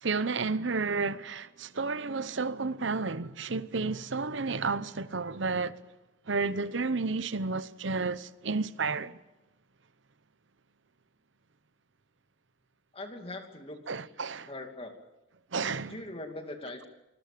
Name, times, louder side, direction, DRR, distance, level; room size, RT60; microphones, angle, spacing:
voice 1, 0.0-5.8 6.3-9.2 13.9-14.5 15.5-16.0, right 4 dB, 70° right, 0.9 m, -31 dB
voice 2, 12.9-13.9 14.5-14.9 15.9-16.9, left 2 dB, 30° left, 2.6 m, -41 dB
25.5 x 20.5 x 6.8 m
head